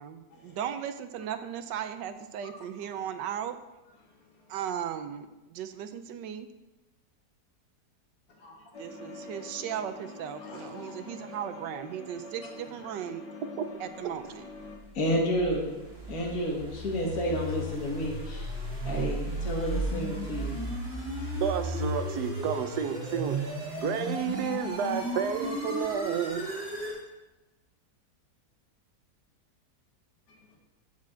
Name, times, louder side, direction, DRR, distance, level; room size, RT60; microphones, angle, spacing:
voice 1, 0.0-3.6 4.5-6.5 8.8-13.2 13.8-14.4, right 9 dB, 90° right, 9 dB, 1.4 m, -37 dB
sound 1, 8.7-14.8, left 4 dB, 80° left, 1.7 m, -45 dB
voice 2, 10.4-10.9 14.9-15.7 16.1-18.5 18.8-20.6 21.2-21.3, equal, 55° left, -2 dB, 2.1 m, -31 dB
sound 2, 14.8-27.0, right 1 dB, 35° right, 3.0 m, -34 dB
voice 3, 21.4-23.4 23.8-26.4, right 7 dB, 70° right, 8 dB, 1.3 m, -31 dB
15.0 x 5.9 x 3.8 m, 1.0 s
omnidirectional pair, 1.9 m